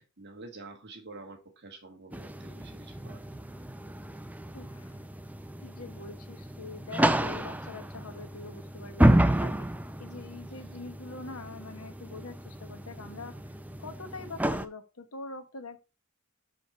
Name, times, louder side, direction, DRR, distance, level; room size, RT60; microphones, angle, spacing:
voice 1, 0.0-3.2, right 3 dB, 50° right, 2.0 m, -48 dB
sound 1, 2.1-14.7, right 1 dB, 5° right, 0.5 m, -30 dB
voice 2, 4.5-5.1 5.6-9.7 10.0-13.5 13.8-15.8, left 3 dB, 75° left, 1.2 m, -44 dB
6.5 x 5.1 x 4.4 m
head